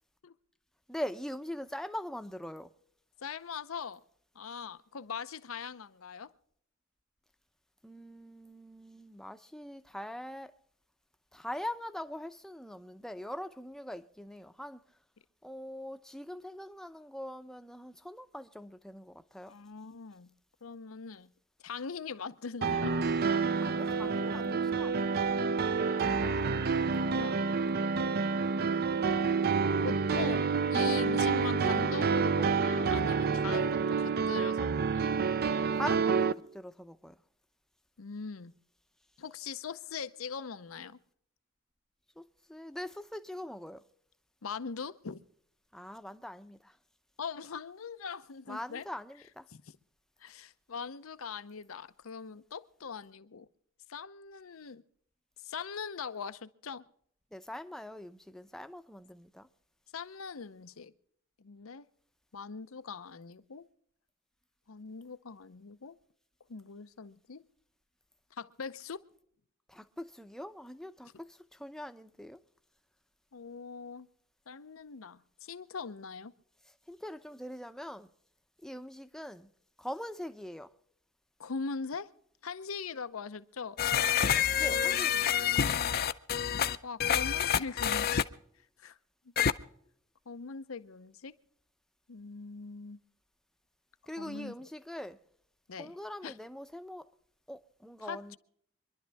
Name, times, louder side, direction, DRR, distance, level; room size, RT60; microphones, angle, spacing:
voice 1, 0.9-2.7 7.8-10.5 11.3-14.8 15.4-19.5 23.6-25.1 35.7-37.1 42.2-42.3 42.5-43.8 45.7-46.8 48.5-49.5 57.3-59.5 69.7-72.4 76.9-78.1 78.6-79.5 79.8-80.7 84.6-85.3 94.1-95.2 95.8-97.1 97.5-98.4, left 1 dB, ahead, 0.6 m, -42 dB
voice 2, 3.2-4.0 4.3-6.3 19.5-20.3 20.6-21.3 21.6-23.0 25.8-26.1 26.9-28.4 29.8-34.7 34.9-35.2 38.0-38.5 39.2-41.0 44.4-45.2 47.2-48.9 49.5-49.6 50.2-53.5 53.9-54.8 55.4-56.8 59.9-60.9 61.4-61.9 62.3-63.7 64.7-66.0 66.5-67.5 68.3-69.0 73.3-74.1 74.5-76.3 81.4-82.1 82.4-83.8 86.8-88.3 88.8-89.0 90.3-91.4 92.1-93.0 94.2-94.5 95.7-95.9 96.2-96.3 98.0-98.4, left 5 dB, 85° left, 0.7 m, -41 dB
sound 1, 22.6-36.3, right 5 dB, 50° right, 0.5 m, -28 dB
sound 2, 83.8-88.2 89.4-89.5, left 8 dB, 45° left, 0.5 m, -27 dB
25.5 x 11.5 x 3.4 m
head